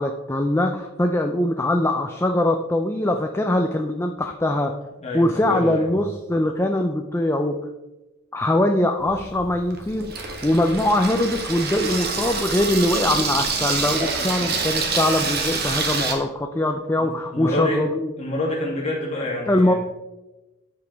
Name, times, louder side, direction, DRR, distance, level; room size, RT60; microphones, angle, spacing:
voice 1, 0.0-4.7 5.1-7.6 8.3-18.1 19.5-19.7, left 1 dB, 10° left, 4 dB, 0.4 m, -22 dB
voice 2, 5.0-5.9 17.0-17.8 18.2-19.8, left 1 dB, 30° left, -4 dB, 2.5 m, -27 dB
Water tap faucet / Sink (filling or washing), 9.0-16.1, right 4 dB, 45° right, 1.3 m, -27 dB
13.5 x 4.9 x 3.4 m, 1.0 s
head